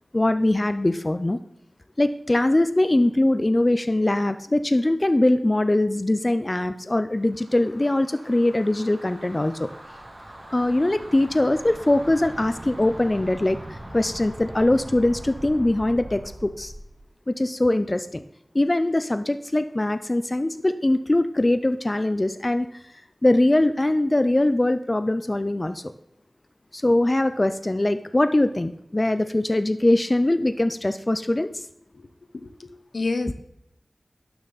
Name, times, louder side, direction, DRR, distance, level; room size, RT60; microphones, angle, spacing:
voice 1, 0.1-1.4 2.0-9.7 10.5-16.7 17.3-18.2 18.5-22.8 23.2-25.9 26.7-31.6, left 1 dB, 30° left, 10 dB, 0.4 m, -22 dB
sound 1, 7.2-16.9, right 1 dB, 40° right, 1.9 m, -41 dB
voice 2, 32.3-33.3, left 3 dB, 75° left, 10 dB, 0.7 m, -29 dB
11.5 x 7.0 x 4.0 m, 0.76 s
wide cardioid pair, 80°, 0 cm